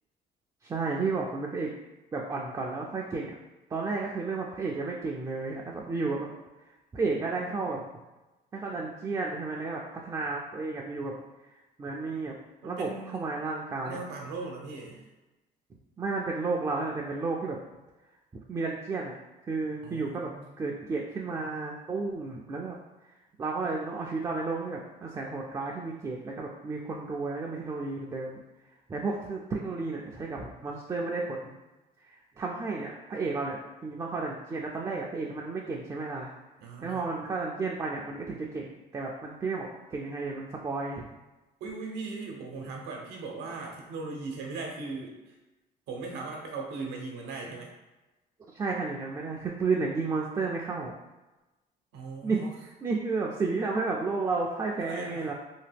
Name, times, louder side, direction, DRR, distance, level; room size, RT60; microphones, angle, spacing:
voice 1, 0.6-1.7 2.1-3.3 3.7-6.3 6.9-7.8 8.5-11.1 11.8-12.4 12.6-14.0 16.0-17.6 18.5-19.1 19.4-20.3 20.6-22.8 23.4-28.4 28.9-31.5 32.4-36.3 36.8-41.1 42.7-42.8 48.5-50.9 52.2-55.3, right 3 dB, 20° right, -2 dB, 0.3 m, -32 dB
voice 2, 12.6-13.3 13.8-15.0 19.8-20.4 36.6-37.1 41.6-45.3 45.9-47.7 51.9-52.5 54.8-55.3, right 3 dB, 85° right, 0 dB, 0.7 m, -39 dB
2.8 x 2.2 x 3.4 m, 1.1 s
cardioid pair, 110°, 17 cm